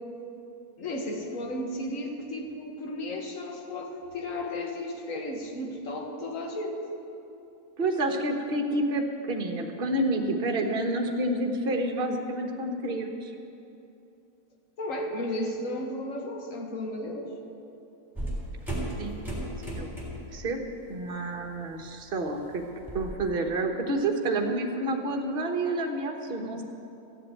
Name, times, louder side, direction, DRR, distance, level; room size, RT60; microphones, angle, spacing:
voice 1, 0.8-6.8 14.8-17.3, left 1 dB, 60° left, 3 dB, 1.8 m, -34 dB
voice 2, 7.8-13.3 19.0-19.2 19.6-19.9 20.3-20.6 20.9-22.6 22.9-26.6, right 2 dB, 40° right, 3 dB, 1.3 m, -29 dB
sound 1, 18.1-20.4 20.7-21.1 21.4-23.1, right 1 dB, ahead, 3.5 m, -35 dB
14.5 x 7.6 x 9.0 m, 2.8 s
omnidirectional pair, 1.6 m